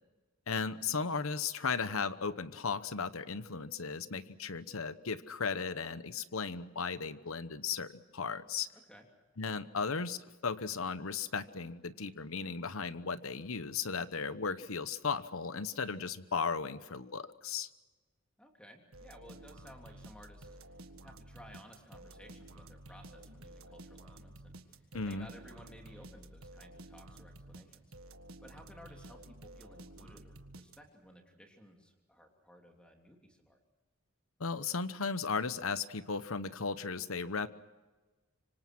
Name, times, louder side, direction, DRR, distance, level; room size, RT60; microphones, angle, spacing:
voice 1, 0.5-8.7 9.4-17.7 24.9-25.3 34.4-37.5, left 5 dB, 80° left, 14 dB, 1.0 m, -36 dB
voice 2, 9.4-9.8 18.4-20.7 21.0-27.9 28.4-33.6, equal, 5° left, 2 dB, 3.1 m, -57 dB
sound 1, 18.9-31.1, right 1 dB, 80° right, 1.7 m, -52 dB
25.5 x 25.5 x 6.2 m, 1.3 s
head